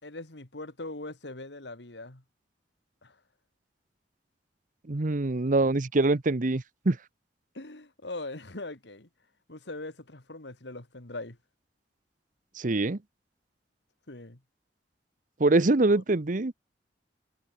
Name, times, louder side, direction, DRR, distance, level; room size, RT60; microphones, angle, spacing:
voice 1, 0.0-2.2 3.0-3.2 7.5-9.1 9.5-11.4 14.1-14.4 15.8-16.0, left 2 dB, 80° left, 2.5 m, -41 dB
voice 2, 4.9-7.0 12.6-13.0 15.4-16.5, right 2 dB, 50° right, 0.9 m, -24 dB
head